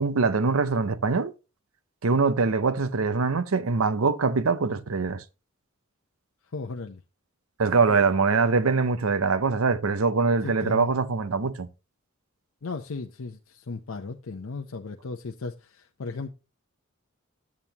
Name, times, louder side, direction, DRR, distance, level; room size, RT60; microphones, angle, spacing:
voice 1, 0.0-1.3 2.0-5.2 7.6-11.7, right 4 dB, 80° right, 0.7 m, -23 dB
voice 2, 6.5-7.0 7.9-8.0 10.4-10.9 12.6-16.3, left 3 dB, 75° left, 0.6 m, -36 dB
9.6 x 8.9 x 2.8 m
head